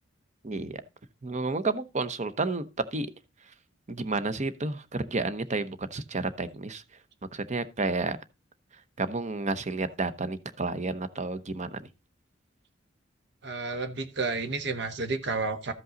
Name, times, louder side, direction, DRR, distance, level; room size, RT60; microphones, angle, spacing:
voice 1, 0.4-0.8 1.2-2.7 2.9-3.1 3.9-6.8 7.3-8.2 9.0-11.9, right 3 dB, 40° right, 0.8 m, -31 dB
voice 2, 13.4-15.7, right 3 dB, 65° right, 1.3 m, -31 dB
13.5 x 5.4 x 3.9 m
head